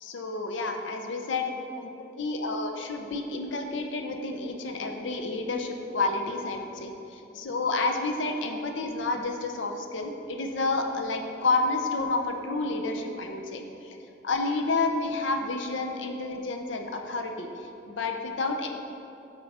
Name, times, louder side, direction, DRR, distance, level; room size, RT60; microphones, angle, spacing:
voice 1, 0.0-1.4 1.7-1.9 2.2-14.0 14.2-18.7, left 3 dB, 75° left, 4 dB, 0.6 m, -30 dB
7.4 x 4.5 x 4.3 m, 2.9 s
head